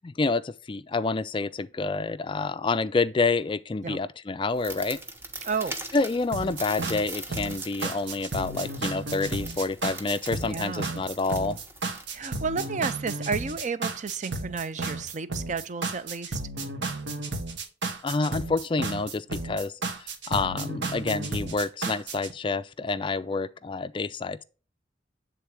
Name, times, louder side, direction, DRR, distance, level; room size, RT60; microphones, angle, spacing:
voice 1, 0.0-5.0 5.9-11.6 18.0-19.7 20.0-24.4, left 3 dB, 25° left, 0.3 m, -28 dB
sound 1, 4.5-12.6, right 2 dB, 15° right, 0.8 m, -42 dB
voice 2, 5.4-5.8 10.4-10.9 12.1-16.4, right 5 dB, 40° right, 0.5 m, -32 dB
sound 2, 6.3-22.3, right 3 dB, 75° right, 1.2 m, -33 dB
8.4 x 3.7 x 4.7 m
head